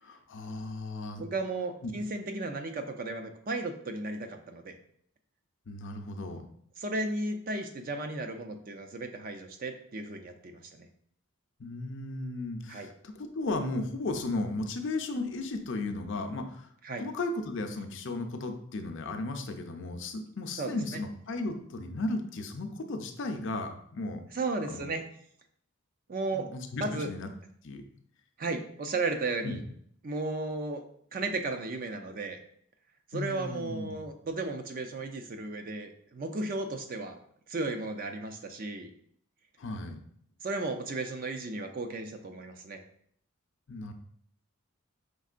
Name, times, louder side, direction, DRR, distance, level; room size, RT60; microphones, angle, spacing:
voice 1, 0.0-1.3 1.8-1.9 5.7-6.5 11.6-16.7 17.0-24.2 24.6-24.9 26.3-27.3 27.6-27.8 29.4-29.6 33.1-34.0 39.6-40.0 43.7-43.9, left 2 dB, 55° left, 5 dB, 0.5 m, -35 dB
voice 2, 1.2-4.7 6.8-10.9 12.7-12.9 16.8-17.0 20.6-21.0 24.3-25.0 26.1-26.5 26.8-27.1 28.4-29.6 30.0-30.8 31.1-32.4 33.1-37.2 37.5-38.9 40.4-42.8, right 2 dB, 40° right, 6 dB, 0.4 m, -34 dB
5.2 x 3.6 x 2.5 m, 0.64 s
head